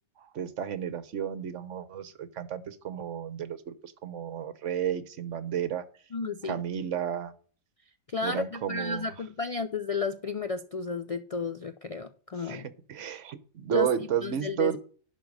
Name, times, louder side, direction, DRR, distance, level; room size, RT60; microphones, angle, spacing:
voice 1, 0.2-5.8 6.4-7.3 8.2-9.1 12.5-14.8, right 9 dB, 60° right, 1.2 m, -32 dB
voice 2, 6.1-6.6 8.1-12.7 13.7-13.9 14.2-14.8, left 4 dB, 70° left, 0.3 m, -32 dB
11.0 x 4.2 x 6.4 m
omnidirectional pair, 1.5 m